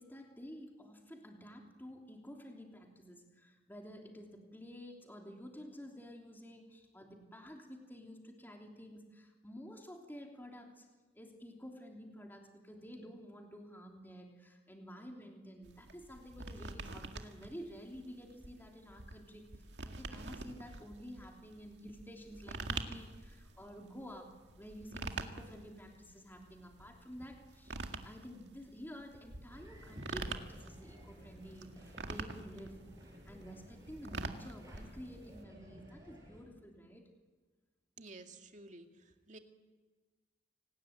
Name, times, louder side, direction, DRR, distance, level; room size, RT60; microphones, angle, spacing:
voice 1, 0.0-10.9 11.1-32.8 33.2-37.1, equal, 10° left, 1 dB, 3.2 m, -51 dB
sound 1, 15.6-35.4, right 3 dB, 75° right, 1.9 m, -46 dB
sound 2, 29.5-36.4, equal, 20° right, 7.8 m, -54 dB
voice 2, 38.0-39.4, right 2 dB, 45° right, 5 dB, 2.2 m, -53 dB
28.0 x 19.5 x 8.9 m, 1.3 s
head